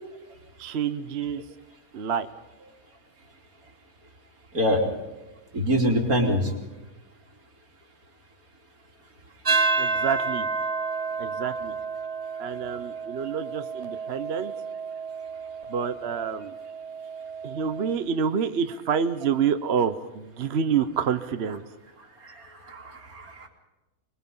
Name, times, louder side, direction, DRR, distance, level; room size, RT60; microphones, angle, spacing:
voice 1, 0.6-1.4 1.9-2.3 9.8-10.5 11.2-11.7 12.4-14.5 15.7-16.6 17.4-21.6, right 7 dB, 50° right, 10 dB, 1.0 m, -27 dB
voice 2, 5.5-6.5 22.7-23.5, equal, 75° right, 1 dB, 3.6 m, -24 dB
sound 1, 9.4-17.9, right 4 dB, 30° right, 0.9 m, -30 dB
25.0 x 21.5 x 5.5 m, 1.1 s
omnidirectional pair, 1.5 m